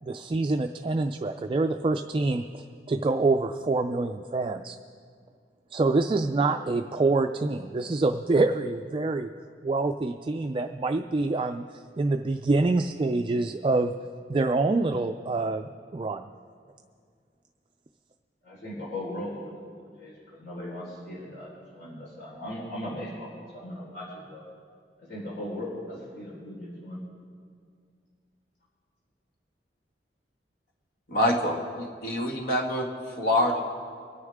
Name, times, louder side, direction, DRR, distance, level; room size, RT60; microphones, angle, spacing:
voice 1, 0.0-4.7 5.7-9.3 9.6-13.9 14.3-16.3, right 3 dB, 30° right, 6 dB, 0.4 m, -26 dB
voice 2, 18.4-19.5 19.8-24.4 25.0-27.0, left 1 dB, 90° left, -7 dB, 4.3 m, -38 dB
voice 3, 31.1-32.9 33.2-33.6, left 1 dB, 55° left, 0 dB, 2.0 m, -25 dB
25.5 x 9.7 x 3.6 m, 2.1 s
head